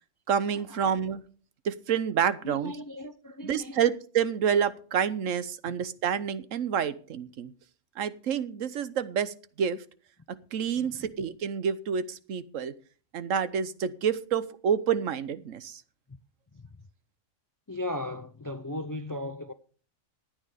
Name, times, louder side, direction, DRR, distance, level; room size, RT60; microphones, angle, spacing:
voice 1, 0.3-1.2 1.6-2.7 3.4-7.5 8.0-9.8 10.5-12.7 13.1-15.8, right 7 dB, 75° right, 1.2 m, -28 dB
voice 2, 2.4-3.8 10.8-11.1 16.5-16.6 17.7-19.5, left 1 dB, 25° left, 0.4 m, -37 dB
14.0 x 9.4 x 5.1 m
omnidirectional pair, 1.4 m